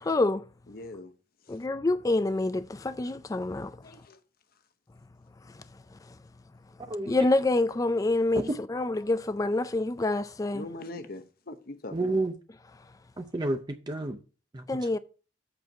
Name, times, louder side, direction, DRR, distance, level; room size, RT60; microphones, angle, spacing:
voice 1, 0.0-0.4 1.5-3.8 7.1-10.6 14.7-15.0, left 2 dB, 20° left, 0.4 m, -27 dB
voice 2, 0.7-1.1 1.5-1.6 3.8-4.2 8.7-8.8 10.5-12.1, left 2 dB, 55° left, 0.8 m, -42 dB
voice 3, 11.9-12.3 13.2-14.2 14.5-14.7, right 2 dB, 25° right, 0.6 m, -30 dB
7.9 x 4.5 x 6.4 m
head